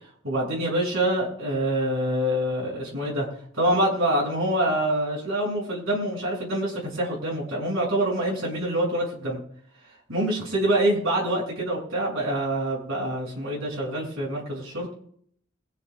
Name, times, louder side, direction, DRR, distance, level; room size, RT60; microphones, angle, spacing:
voice 1, 0.2-3.3 3.5-9.4 10.1-14.9, right 1 dB, 75° right, -4 dB, 7.4 m, -26 dB
23.5 x 16.5 x 2.4 m, 0.64 s
head